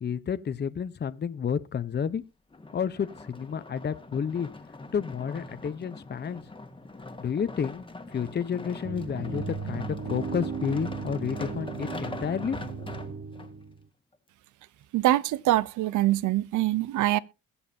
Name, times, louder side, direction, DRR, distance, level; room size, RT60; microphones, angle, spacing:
voice 1, 0.0-2.2 2.7-4.5 4.9-6.4 7.2-7.8 8.1-12.9, left 7 dB, 35° left, 0.8 m, -31 dB
sound 1, 2.5-13.5 14.1-14.2, left 2 dB, 15° left, 1.7 m, -42 dB
sound 2, 8.8-13.8, right 5 dB, 40° right, 1.0 m, -36 dB
voice 2, 14.9-17.2, right 15 dB, 80° right, 0.7 m, -24 dB
21.5 x 7.2 x 2.7 m
cardioid pair, 90°, 30 cm